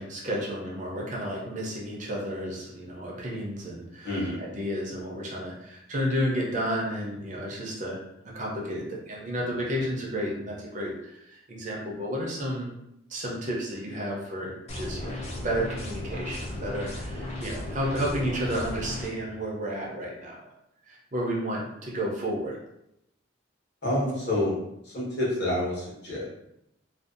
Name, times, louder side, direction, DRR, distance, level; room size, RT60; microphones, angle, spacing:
voice 1, 0.0-12.7 13.1-20.4 20.9-22.6, equal, 40° right, -3 dB, 0.5 m, -32 dB
voice 2, 4.0-4.4 23.8-24.5 24.8-26.2, left 1 dB, 55° left, -7 dB, 1.1 m, -28 dB
sound 1, 14.7-19.1, left 1 dB, 35° left, 0.4 m, -35 dB
2.5 x 2.2 x 2.4 m, 0.82 s
head